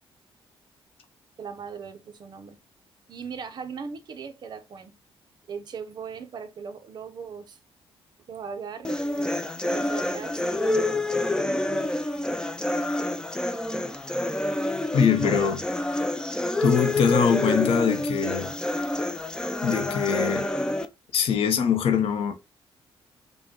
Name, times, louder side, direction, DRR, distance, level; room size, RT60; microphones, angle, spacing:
voice 1, 1.4-2.6 3.1-5.0 5.5-7.6 8.3-11.2 15.3-15.5 17.0-17.1, right 6 dB, 45° right, 0.6 m, -39 dB
sound 1, 8.8-20.9, left 1 dB, 10° left, 0.4 m, -28 dB
voice 2, 14.9-15.6 16.6-18.5 19.6-20.5 21.1-22.3, left 7 dB, 75° left, 0.7 m, -23 dB
5.3 x 2.2 x 2.8 m
cardioid pair, 130°, 10 cm